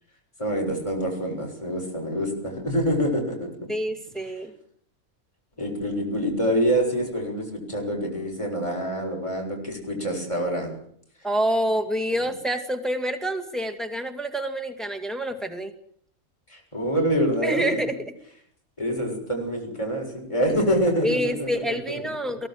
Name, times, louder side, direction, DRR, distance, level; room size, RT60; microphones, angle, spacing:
voice 1, 0.4-3.5 5.6-10.7 16.5-17.7 18.8-22.0, equal, 20° left, 0 dB, 7.0 m, -26 dB
voice 2, 3.7-4.5 11.2-15.7 17.4-18.1 21.0-22.5, equal, ahead, 6 dB, 2.2 m, -27 dB
23.5 x 18.0 x 7.8 m, 0.62 s
omnidirectional pair, 1.5 m